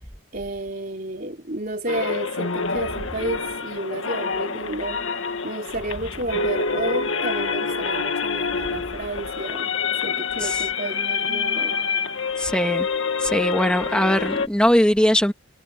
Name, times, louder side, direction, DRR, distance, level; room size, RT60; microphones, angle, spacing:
voice 1, 0.3-11.8, right 1 dB, 40° right, 3.9 m, -31 dB
sound 1, 1.9-14.5, left 5 dB, 65° left, 1.7 m, -27 dB
voice 2, 12.4-12.9 13.2-15.3, equal, 5° left, 1.8 m, -20 dB
head